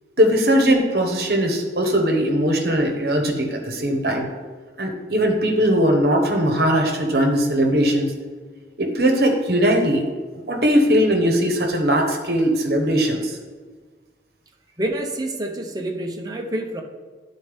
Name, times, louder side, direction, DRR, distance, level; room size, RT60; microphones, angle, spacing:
voice 1, 0.2-4.3 4.8-8.2 8.8-10.1 10.5-13.4, equal, 60° right, 2 dB, 1.0 m, -19 dB
voice 2, 14.8-16.8, right 1 dB, 20° right, 1 dB, 0.6 m, -27 dB
10.5 x 4.1 x 3.5 m, 1.4 s
head